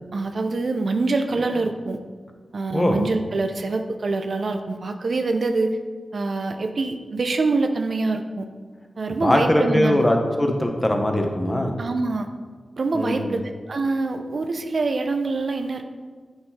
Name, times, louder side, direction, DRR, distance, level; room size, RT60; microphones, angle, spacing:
voice 1, 0.1-2.0 2.5-5.8 6.1-8.5 9.0-10.1 11.8-12.3 12.8-13.4 13.7-15.9, right 3 dB, 65° right, 6 dB, 0.5 m, -25 dB
voice 2, 9.2-11.7 12.9-13.4, left 1 dB, 20° left, 3 dB, 0.9 m, -21 dB
8.7 x 4.0 x 4.1 m, 1.5 s
wide cardioid pair, 75°, 0 cm